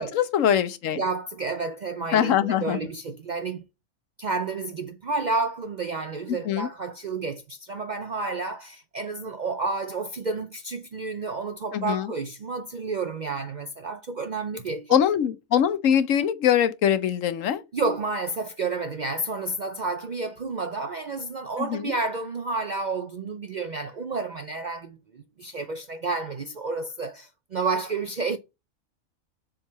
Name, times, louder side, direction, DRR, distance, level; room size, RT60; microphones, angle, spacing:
voice 1, 0.0-1.0 2.1-2.8 6.4-6.7 11.7-12.1 14.9-17.6 21.6-21.9, left 9 dB, 70° left, 1.1 m, -23 dB
voice 2, 0.9-3.6 4.2-15.0 15.9-16.0 17.7-28.4, right 3 dB, 55° right, 0.5 m, -30 dB
7.3 x 3.8 x 5.5 m
omnidirectional pair, 1.4 m